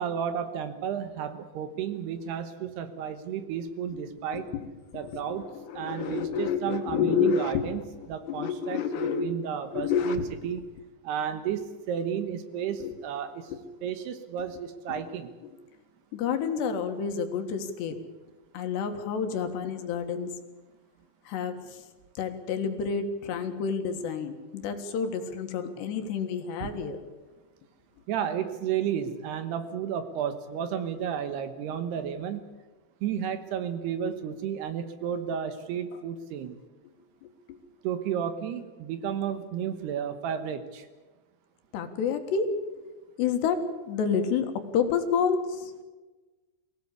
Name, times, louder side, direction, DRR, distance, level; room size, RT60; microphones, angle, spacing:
voice 1, 0.0-4.5 4.9-7.8 8.1-10.6 11.0-13.5 13.8-15.3 26.6-26.7 28.1-32.4 33.0-36.6 37.8-40.9, right 8 dB, 70° right, 10 dB, 3.0 m, -32 dB
voice 2, 4.3-7.9 8.3-9.3 9.7-10.3 12.8-13.0 13.5-13.6 14.9-15.0 15.4-15.5 16.1-18.0 18.5-20.3 21.3-21.8 22.2-27.0 37.2-37.6 41.7-42.6 43.2-45.7, left 6 dB, 70° left, 6 dB, 3.6 m, -29 dB
23.5 x 17.0 x 8.3 m, 1.2 s
omnidirectional pair, 5.2 m